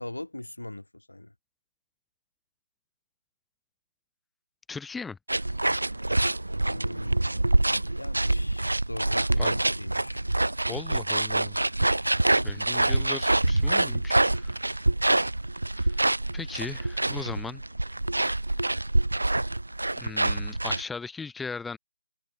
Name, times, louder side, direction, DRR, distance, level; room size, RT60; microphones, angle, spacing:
voice 1, 0.0-1.3 6.7-10.3 12.4-12.6, left 1 dB, 80° left, 0.7 m, -40 dB
voice 2, 4.7-5.2 9.4-9.5 10.7-11.6 12.4-14.6 15.7-17.6 20.0-21.8, left 4 dB, 5° left, 0.5 m, -38 dB
sound 1, 5.3-20.8, right 2 dB, 75° right, 0.4 m, -26 dB
figure-of-eight pair, 150°, 0 cm